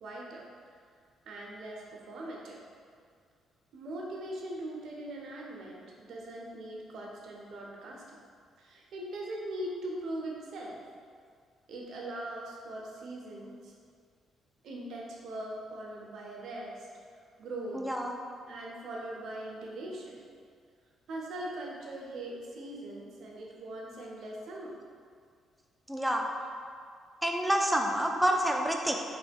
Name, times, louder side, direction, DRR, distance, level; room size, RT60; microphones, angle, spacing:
voice 1, 0.0-0.4 1.3-2.6 3.7-8.2 8.6-10.8 11.7-13.7 14.6-16.9 17.4-17.9 18.5-20.2 21.1-24.7 26.4-26.5, right 1 dB, 70° right, -2 dB, 0.5 m, -41 dB
voice 2, 17.7-18.2 25.9-26.3 27.2-29.0, equal, 5° right, 2 dB, 0.3 m, -28 dB
3.0 x 2.1 x 3.4 m, 2.1 s
cardioid pair, 90°, 0 cm